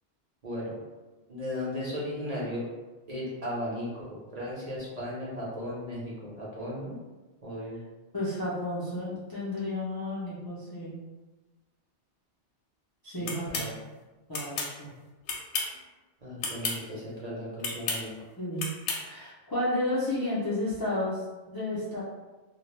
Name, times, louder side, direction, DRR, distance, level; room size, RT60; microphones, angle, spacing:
voice 1, 1.3-2.6 3.1-6.9 7.4-7.8 13.0-13.7 16.2-18.1, left 1 dB, 40° right, -6 dB, 0.7 m, -36 dB
voice 2, 8.1-11.0 13.0-13.7 14.3-14.9 18.4-18.7 19.0-22.0, left 1 dB, 35° left, -9 dB, 0.4 m, -32 dB
sound 1, 13.3-13.7 14.3-14.7 15.3-15.8 16.4-16.8 17.6-18.0 18.6-19.0, left 3 dB, 80° left, 0.9 m, -31 dB
2.2 x 2.1 x 3.0 m, 1.2 s
omnidirectional pair, 1.2 m